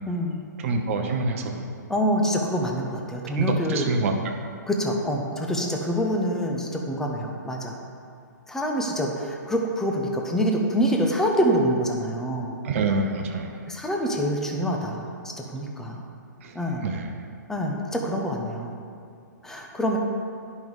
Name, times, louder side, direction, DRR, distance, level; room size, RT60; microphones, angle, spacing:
voice 1, 0.6-1.6 3.3-4.4 12.6-13.6 16.4-17.1, right 3 dB, 45° right, 3 dB, 0.9 m, -26 dB
voice 2, 1.9-3.9 4.7-7.8 8.5-12.6 13.7-16.0 16.5-16.8 17.5-18.7 19.4-20.0, equal, 5° left, 0 dB, 0.9 m, -26 dB
10.5 x 5.5 x 4.8 m, 2.4 s
figure-of-eight pair, 125°, 10 cm